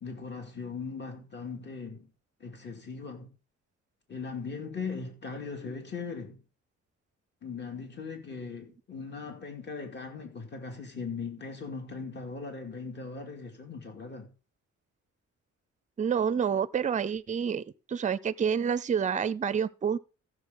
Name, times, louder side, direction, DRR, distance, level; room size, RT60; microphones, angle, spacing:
voice 1, 0.0-2.1 2.4-3.3 4.1-6.4 7.4-14.3, left 4 dB, 35° left, 2.4 m, -39 dB
voice 2, 16.0-17.6 17.9-20.0, right 7 dB, 25° right, 0.5 m, -28 dB
14.5 x 6.9 x 3.8 m
cardioid pair, 130°, 29 cm